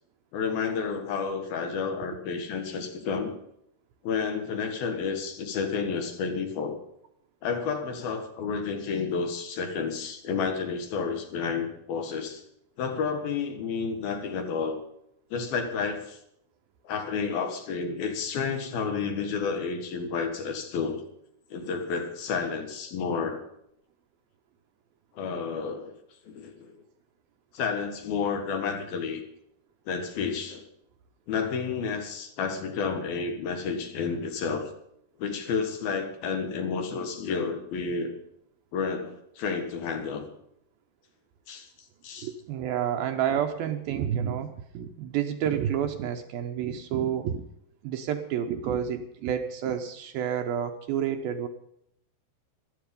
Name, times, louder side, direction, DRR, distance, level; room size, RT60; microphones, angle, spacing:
voice 1, 0.3-3.3 4.0-6.8 7.4-12.4 12.8-14.8 15.3-16.2 16.8-21.0 21.5-23.4 25.2-26.0 26.3-26.7 27.5-29.2 29.9-30.6 31.3-34.7 35.2-38.1 38.7-40.2 41.5-41.7 42.0-42.3, left 5 dB, 65° left, 5 dB, 3.3 m, -30 dB
voice 2, 42.2-47.4 47.8-51.5, right 9 dB, 75° right, 6 dB, 2.5 m, -29 dB
15.0 x 12.5 x 5.3 m, 0.73 s
omnidirectional pair, 4.9 m